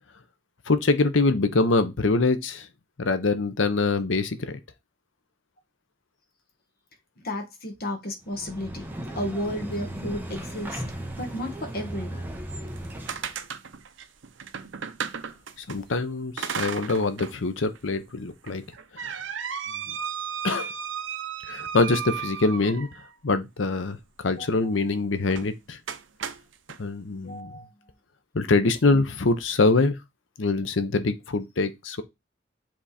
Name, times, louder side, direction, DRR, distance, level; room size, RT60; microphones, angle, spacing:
voice 1, 0.7-2.7 3.0-4.6 15.6-18.6 18.9-19.2 19.9-20.0 20.4-20.7 21.4-25.8 26.8-27.5 28.3-30.0 30.4-32.0, left 3 dB, 80° left, 0.8 m, -24 dB
voice 2, 7.2-8.9 9.1-10.8 11.2-12.3 24.3-24.5 27.2-27.7, left 1 dB, 55° left, 1.5 m, -33 dB
sound 1, 8.3-13.3, right 1 dB, 10° right, 1.2 m, -36 dB
sound 2, 12.7-15.8 16.4-17.4 17.7-17.8 18.5-23.1 25.3-25.5 25.9-26.8, right 7 dB, 75° right, 0.7 m, -34 dB
7.6 x 3.5 x 4.2 m
head